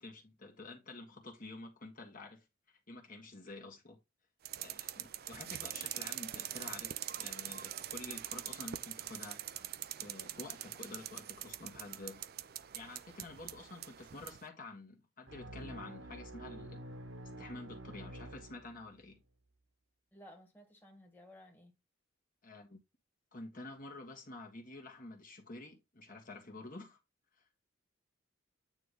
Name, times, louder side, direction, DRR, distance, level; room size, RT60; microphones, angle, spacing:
voice 1, 0.0-2.5 2.9-4.0 4.6-12.3 12.7-16.8 17.2-19.2 22.4-22.8 23.3-27.0, left 2 dB, 40° left, 1.6 m, -49 dB
sound 1, 4.4-14.4, right 12 dB, 50° right, 0.5 m, -44 dB
sound 2, 15.3-19.1, right 1 dB, 65° right, 1.2 m, -48 dB
voice 2, 20.1-21.7, equal, 10° left, 1.6 m, -56 dB
9.1 x 3.3 x 4.0 m
head